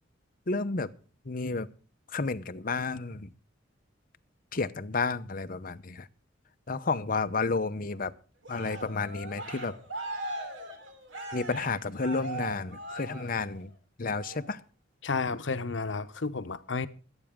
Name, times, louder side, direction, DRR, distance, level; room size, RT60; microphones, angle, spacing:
voice 1, 0.5-0.9 1.2-1.7 2.1-3.3 4.5-6.1 6.7-8.1 8.5-9.7 11.3-13.7 14.0-14.6, left 4 dB, 45° left, 0.8 m, -31 dB
Cheering, 8.4-13.7 14.1-14.5, right 2 dB, 80° right, 2.8 m, -40 dB
voice 2, 15.0-16.9, left 4 dB, 75° left, 0.9 m, -31 dB
22.5 x 9.0 x 3.6 m
head